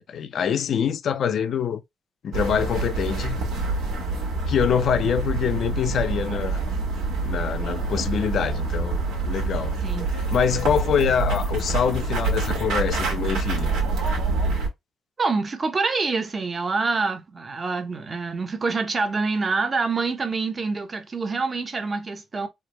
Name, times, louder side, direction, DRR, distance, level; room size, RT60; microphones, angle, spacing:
voice 1, 0.0-1.8 2.2-3.4 4.5-6.6 7.2-9.8 10.1-13.7, left 8 dB, 60° left, 0.4 m, -25 dB
sound 1, 2.3-14.7, right 3 dB, 90° right, 1.2 m, -26 dB
voice 2, 9.8-10.1 15.2-22.5, right 4 dB, 35° right, 0.8 m, -26 dB
3.3 x 2.1 x 3.0 m
cardioid pair, 90°, 0 cm